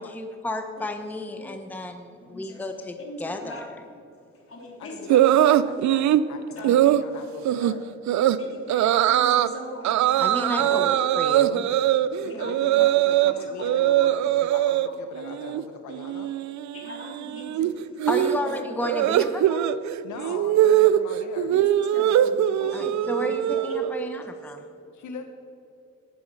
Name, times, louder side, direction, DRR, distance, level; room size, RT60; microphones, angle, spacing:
voice 1, 0.0-3.9 10.2-11.7 18.1-19.8 22.7-24.7, left 1 dB, 5° left, 6 dB, 0.8 m, -32 dB
voice 2, 3.0-3.7 4.5-5.3 6.3-6.9 8.4-10.3 10.6-10.7 12.1-12.8 16.7-17.7 18.2-18.3 21.5-21.6 21.9-22.3 22.6-23.3, left 1 dB, 45° left, 1 dB, 2.8 m, -41 dB
voice 3, 4.8-7.8 10.6-10.7 12.2-16.3 20.0-21.5 24.9-25.3, left 6 dB, 75° left, 6 dB, 0.9 m, -40 dB
sound 1, 5.1-6.2 6.6-7.0 7.5-7.7 8.1-8.4 8.7-9.5 9.8-13.3 13.6-14.9 15.2-15.6 15.9-24.1, right 12 dB, 65° right, 0.6 m, -21 dB
18.0 x 6.4 x 5.3 m, 2.7 s
cardioid pair, 90°, 30 cm